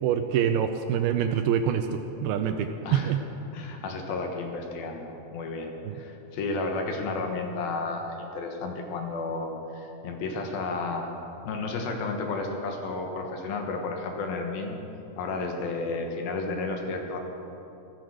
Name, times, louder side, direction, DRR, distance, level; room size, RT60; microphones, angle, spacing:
voice 1, 0.0-3.2 5.9-6.0, right 8 dB, 80° right, 7 dB, 2.3 m, -26 dB
voice 2, 2.8-3.1 3.5-11.1 11.5-14.8 15.2-17.2, left 3 dB, 70° left, 3 dB, 2.9 m, -32 dB
16.0 x 14.0 x 6.4 m, 3.0 s
omnidirectional pair, 4.9 m